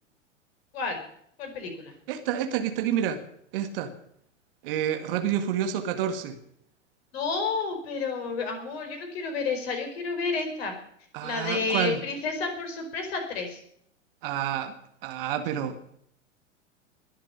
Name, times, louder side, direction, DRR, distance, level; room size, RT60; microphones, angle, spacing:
voice 1, 1.4-1.9 7.1-10.7 11.2-13.6, left 4 dB, 50° left, 5 dB, 5.0 m, -30 dB
voice 2, 2.1-3.2 3.5-3.9 4.6-6.4 11.1-12.0 14.2-14.7 15.0-15.8, right 10 dB, 45° right, 9 dB, 2.0 m, -28 dB
21.5 x 7.5 x 8.6 m, 0.68 s
figure-of-eight pair, 95°, 38 cm